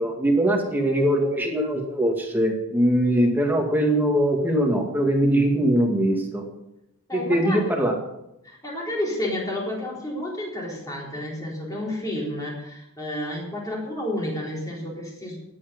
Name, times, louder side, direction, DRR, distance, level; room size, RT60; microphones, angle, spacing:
voice 1, 0.0-6.4 7.1-7.9, right 1 dB, 10° right, 0 dB, 2.2 m, -22 dB
voice 2, 7.1-7.7 8.4-15.4, left 1 dB, 15° left, -3 dB, 3.9 m, -30 dB
19.0 x 8.8 x 5.4 m, 0.86 s
head